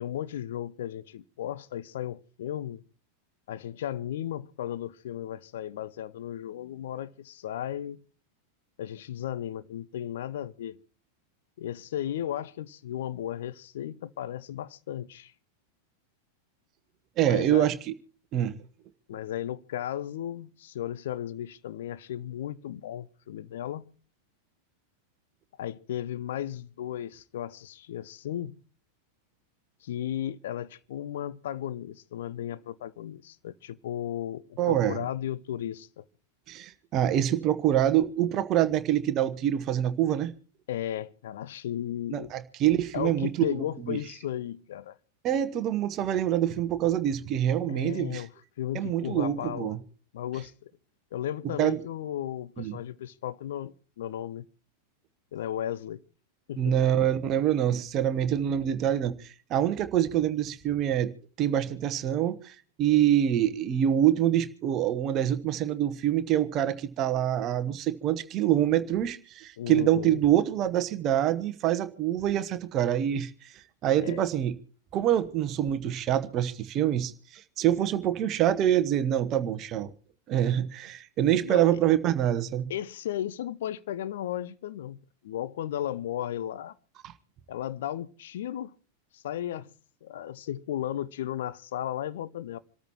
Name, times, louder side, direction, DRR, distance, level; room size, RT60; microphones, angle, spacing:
voice 1, 0.0-2.8 3.5-8.0 8.8-10.8 11.6-15.3 17.3-17.7 19.1-23.9 25.6-28.5 29.8-36.0 40.7-42.3 42.9-45.0 47.7-48.3 48.6-49.7 50.1-50.7 51.1-54.5 55.3-56.0 56.5-56.8 69.6-70.2 74.0-74.2 81.4-81.6 82.7-86.7 87.5-88.7 89.1-89.7 90.0-92.6, left 11 dB, 60° left, 0.6 m, -35 dB
voice 2, 17.2-17.8 18.3-18.5 34.6-35.0 36.5-40.3 42.1-44.0 45.2-48.2 48.7-49.8 51.6-51.8 52.6-52.8 56.6-61.1 61.4-74.5 74.9-79.9 80.3-82.7 87.0-87.1, right 11 dB, 35° right, 1.0 m, -26 dB
27.0 x 13.5 x 3.0 m
figure-of-eight pair, 90°, 0 cm